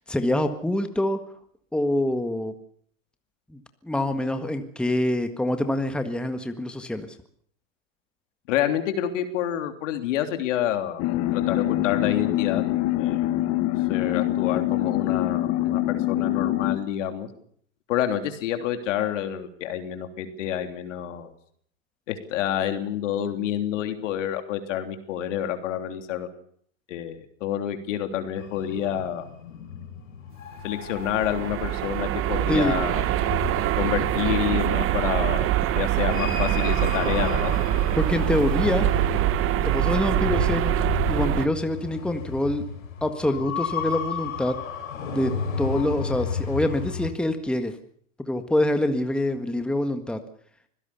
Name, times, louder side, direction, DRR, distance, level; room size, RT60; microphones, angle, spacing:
voice 1, 0.1-1.2 1.7-2.5 3.5-7.1 32.5-32.8 38.0-38.9 39.6-40.7 41.1-42.6 43.0-44.6 45.1-47.7 48.3-50.2, left 1 dB, ahead, 7 dB, 1.7 m, -25 dB
voice 2, 8.5-11.0 11.3-12.6 13.0-13.3 13.9-17.3 17.9-21.3 22.1-26.3 26.9-29.3 30.6-33.0 33.8-35.5 35.7-37.5, left 10 dB, 65° left, 7 dB, 3.3 m, -28 dB
sound 1, 11.0-16.8, left 15 dB, 40° left, 1.7 m, -24 dB
sound 2, 28.4-47.1, left 7 dB, 85° left, 5.0 m, -34 dB
sound 3, 30.8-41.5, right 14 dB, 35° right, 1.2 m, -24 dB
25.0 x 17.0 x 7.1 m, 0.62 s
hypercardioid pair, 110°, 40 cm